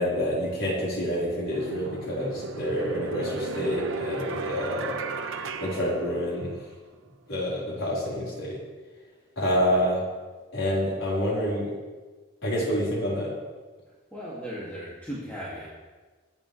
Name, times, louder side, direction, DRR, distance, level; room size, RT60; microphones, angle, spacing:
voice 1, 0.0-5.0 5.6-6.6 7.3-8.6 9.4-10.0 10.5-11.7 12.4-13.3, equal, 75° left, -6 dB, 4.7 m, -27 dB
sound 1, 0.8-0.9 1.5-6.7, right 3 dB, 80° right, 0.9 m, -35 dB
voice 2, 14.1-15.7, equal, 10° left, -9 dB, 2.6 m, -36 dB
22.5 x 9.1 x 3.5 m, 1.3 s
head